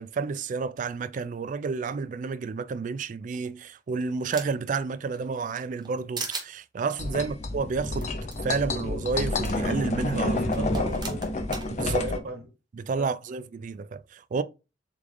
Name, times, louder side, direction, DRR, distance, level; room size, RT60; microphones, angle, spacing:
voice 1, 0.0-8.1 8.4-10.4 11.7-12.1 12.7-14.4, right 4 dB, 45° right, 0.3 m, -30 dB
sound 1, 3.3-4.7 5.1-5.9 6.2-6.5 8.0-8.1 8.3-8.4 9.4-9.5 10.5-11.7, right 4 dB, 25° right, 0.7 m, -37 dB
sound 2, 7.0-12.2, left 2 dB, 40° left, 0.6 m, -29 dB
voice 2, 10.3-11.5 12.0-12.4 13.0-13.1, right 1 dB, 65° right, 1.7 m, -37 dB
3.6 x 3.4 x 3.3 m
head